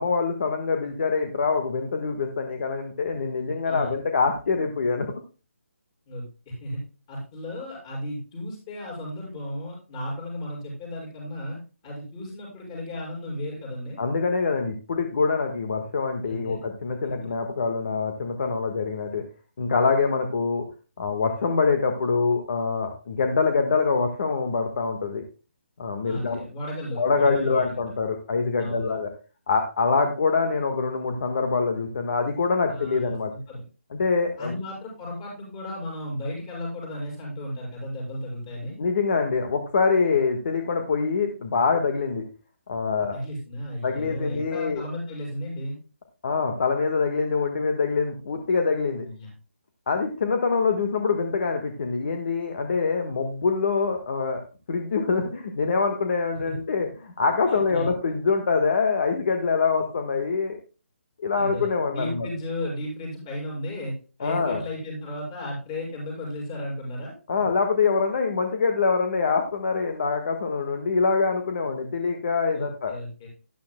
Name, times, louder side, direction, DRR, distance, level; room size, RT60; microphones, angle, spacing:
voice 1, 0.0-5.1 14.0-19.2 19.6-20.6 21.0-25.2 25.8-26.4 27.0-29.1 29.5-33.3 33.9-34.5 38.8-42.2 42.7-43.2 43.8-44.8 46.2-49.1 49.9-54.4 54.7-60.6 61.2-62.3 64.2-64.6 67.3-72.9, left 4 dB, 45° left, 5 dB, 1.5 m, -25 dB
voice 2, 6.1-6.8 7.1-11.6 11.8-14.0 16.2-16.6 17.0-17.1 26.0-27.8 28.6-28.9 32.7-33.6 34.4-38.8 43.1-45.8 49.0-49.3 56.5-56.6 57.5-57.9 61.3-63.9 64.2-67.4 72.5-73.3, left 1 dB, 20° left, -3 dB, 6.5 m, -34 dB
12.5 x 11.5 x 2.2 m, 0.33 s
hypercardioid pair, 170°, 7 cm